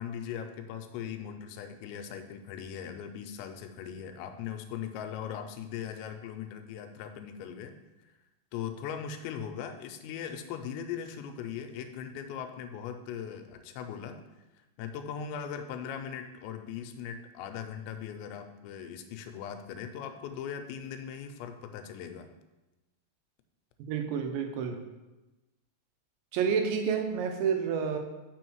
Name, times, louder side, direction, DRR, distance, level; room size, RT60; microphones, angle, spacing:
voice 1, 0.0-7.8 8.5-14.2 14.8-22.3, left 8 dB, 90° left, 7 dB, 2.9 m, -39 dB
voice 2, 23.9-24.8 26.3-28.0, right 6 dB, 85° right, 5 dB, 3.1 m, -29 dB
7.1 x 6.1 x 4.6 m, 1.1 s
omnidirectional pair, 5.1 m